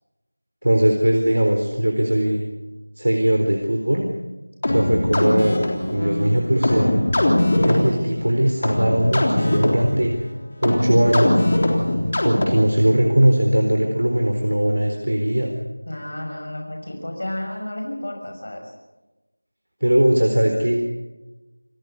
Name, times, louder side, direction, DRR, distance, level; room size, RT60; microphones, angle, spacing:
voice 1, 0.6-2.4 3.0-4.0 4.7-5.6 5.9-6.9 7.6-10.1 10.6-11.5 12.2-15.5 19.8-20.8, right 1 dB, 85° right, 3 dB, 4.1 m, -19 dB
sound 1, 4.6-12.8, left 1 dB, 30° left, 3.6 m, -22 dB
voice 2, 15.9-18.7, left 1 dB, 50° left, 1 dB, 6.3 m, -31 dB
28.5 x 15.5 x 8.2 m, 1.1 s
figure-of-eight pair, 180°, 0 cm